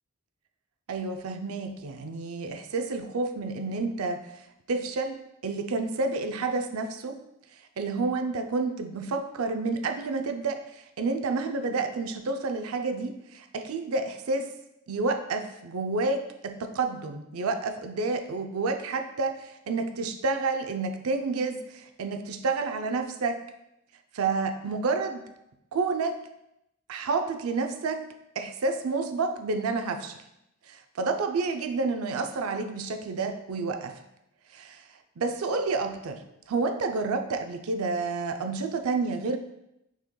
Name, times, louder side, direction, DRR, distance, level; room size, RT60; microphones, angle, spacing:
voice 1, 0.9-7.2 7.8-14.5 14.9-23.4 24.1-25.2 25.7-26.1 26.9-28.0 28.4-30.2 30.7-34.0 34.5-34.9 35.2-36.2 36.5-39.4, right 3 dB, 85° right, 7 dB, 0.5 m, -29 dB
6.2 x 3.8 x 2.2 m, 0.84 s
head